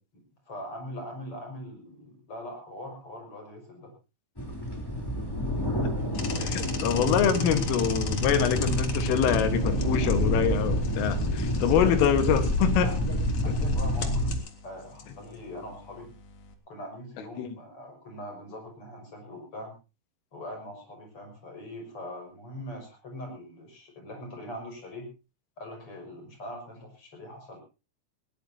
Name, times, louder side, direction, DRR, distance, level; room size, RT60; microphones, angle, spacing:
voice 1, 0.5-3.9 6.7-6.8 11.7-12.3 12.8-14.3 14.6-16.1 16.7-19.7 20.3-25.1 25.6-27.6, left 1 dB, 30° left, 3 dB, 6.2 m, -41 dB
sound 1, 4.4-14.4, equal, 5° left, 2.3 m, -28 dB
sound 2, 6.1-16.5, left 6 dB, 55° left, 1.9 m, -41 dB
voice 2, 6.4-12.9 17.4-17.6, left 8 dB, 90° left, 9 dB, 4.1 m, -25 dB
20.0 x 19.0 x 2.8 m, 0.30 s
omnidirectional pair, 5.6 m